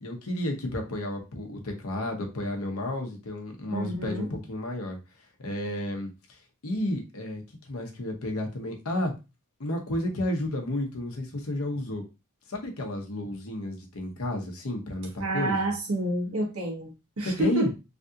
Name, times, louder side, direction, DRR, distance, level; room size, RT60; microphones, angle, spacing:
voice 1, 0.0-5.0 5.4-9.1 9.6-12.0 12.5-15.6 17.4-17.7, left 1 dB, 80° left, 0.9 m, -32 dB
voice 2, 3.7-4.3 15.2-17.7, right 1 dB, 85° right, 1.2 m, -29 dB
3.3 x 2.7 x 2.5 m
head